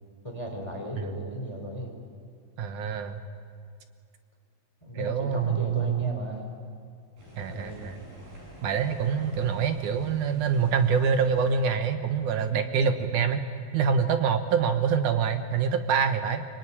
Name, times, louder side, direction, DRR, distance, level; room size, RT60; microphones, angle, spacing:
voice 1, 0.2-1.9 4.8-6.5 7.5-7.8, equal, 10° left, 2 dB, 3.7 m, -36 dB
voice 2, 2.6-3.2 5.0-6.2 7.4-8.0 8.6-13.4 13.7-16.5, right 6 dB, 65° right, 7 dB, 2.4 m, -26 dB
sound 1, 7.2-11.8, right 1 dB, 85° right, 9.3 m, -47 dB
25.0 x 23.5 x 9.9 m, 2.2 s
omnidirectional pair, 4.1 m